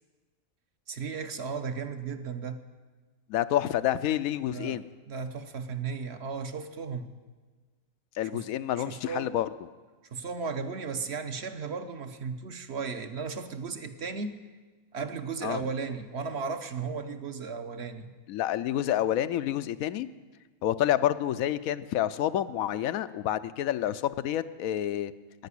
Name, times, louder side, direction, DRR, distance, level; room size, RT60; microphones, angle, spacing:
voice 1, 0.9-2.6 4.5-4.8 5.1-7.1 8.3-8.4 8.8-9.4 10.1-14.4 14.9-18.1, right 5 dB, 55° right, 8 dB, 1.0 m, -35 dB
voice 2, 3.3-4.9 8.2-9.5 15.4-15.6 18.3-20.1 20.6-25.1, left 12 dB, 90° left, 13 dB, 1.0 m, -28 dB
10.5 x 9.3 x 9.8 m, 1.3 s
omnidirectional pair, 1.4 m